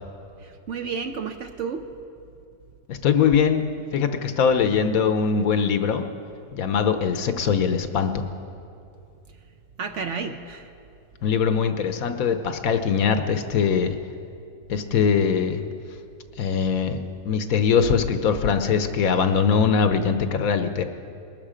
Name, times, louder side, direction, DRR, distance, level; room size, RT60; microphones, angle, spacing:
voice 1, 0.4-1.9 9.8-10.7, right 5 dB, 60° right, 6 dB, 0.9 m, -31 dB
voice 2, 2.9-3.7 3.9-6.0 6.5-8.3 11.2-14.0 14.7-15.6 16.4-20.8, left 6 dB, 70° left, 8 dB, 1.2 m, -22 dB
20.5 x 12.5 x 5.0 m, 2.6 s
omnidirectional pair, 1.7 m